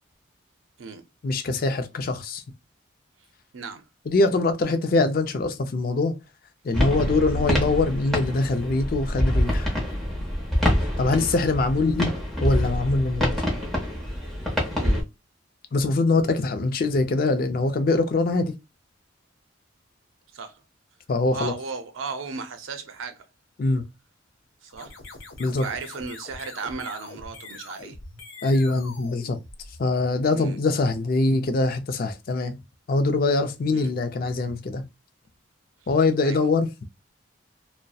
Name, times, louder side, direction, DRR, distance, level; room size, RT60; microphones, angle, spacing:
voice 1, 1.2-2.4 4.1-6.1 6.6-9.8 10.8-12.1 12.4-13.4 15.7-18.5 21.1-21.5 23.6-23.8 25.4-25.7 28.4-29.4 29.8-32.5 32.9-34.8 35.9-36.7, left 3 dB, 45° left, 0.4 m, -23 dB
sound 1, 6.7-15.0, equal, ahead, 0.7 m, -26 dB
voice 2, 14.7-15.1 20.3-20.5 21.3-23.2 24.6-24.9 25.6-28.0 30.3-30.6 33.7-33.9 36.2-36.4, right 4 dB, 80° right, 0.5 m, -35 dB
sound 2, 24.7-30.1, left 3 dB, 80° left, 0.7 m, -43 dB
2.7 x 2.0 x 2.3 m
head